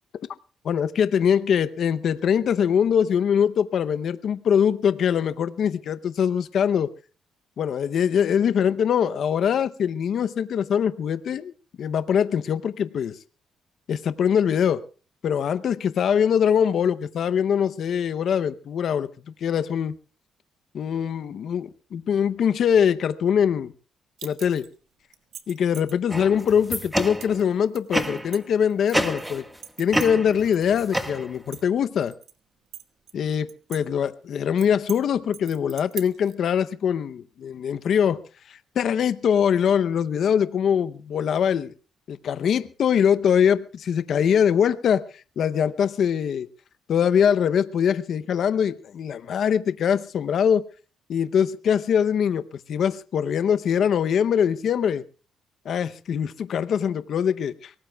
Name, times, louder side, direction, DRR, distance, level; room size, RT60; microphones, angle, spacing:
voice 1, 0.6-6.9 7.6-11.5 11.8-13.2 13.9-14.8 15.2-19.1 19.4-20.0 20.7-23.7 24.2-24.7 25.5-29.4 29.8-32.1 33.1-38.2 38.5-41.7 42.1-46.5 46.9-50.6 51.1-52.4 52.7-55.0 55.7-57.7, left 8 dB, 65° left, 0.7 m, -23 dB
sound 1, 24.2-24.7 25.1-25.9 26.5-26.6 27.2-27.4 27.7-29.2 29.6-30.6 30.9-31.0 31.4-32.3 32.7-33.8 34.1-34.2 34.6-35.0 35.3-36.3, right 9 dB, 75° right, 1.4 m, -41 dB
sound 2, 26.1-27.5 27.9-28.4 28.9-29.6 29.9-31.6, right 1 dB, 5° right, 1.5 m, -28 dB
23.5 x 18.5 x 2.3 m
cardioid pair, 90°, 0 cm